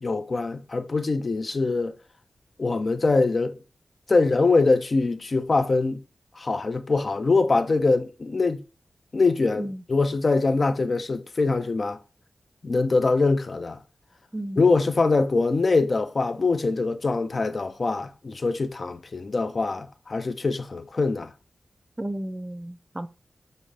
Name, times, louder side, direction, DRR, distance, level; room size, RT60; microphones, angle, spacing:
voice 1, 0.0-2.0 2.6-3.6 4.1-6.0 6.4-8.6 9.1-12.0 12.6-13.8 14.6-21.3, left 3 dB, 55° left, 0.5 m, -23 dB
voice 2, 22.0-23.1, right 1 dB, 25° right, 0.4 m, -33 dB
5.2 x 2.6 x 3.2 m
cardioid pair, 45°, 0 cm